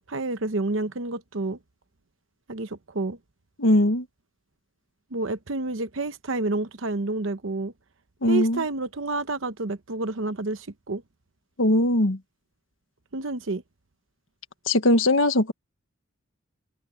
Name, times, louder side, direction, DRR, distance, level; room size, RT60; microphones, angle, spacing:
voice 1, 0.1-1.6 2.5-3.2 5.1-7.7 8.2-11.0 13.1-13.6, right 2 dB, 70° right, 0.9 m, -29 dB
voice 2, 3.6-4.0 8.2-8.6 11.6-12.2 14.7-15.5, left 1 dB, 75° left, 1.4 m, -20 dB
head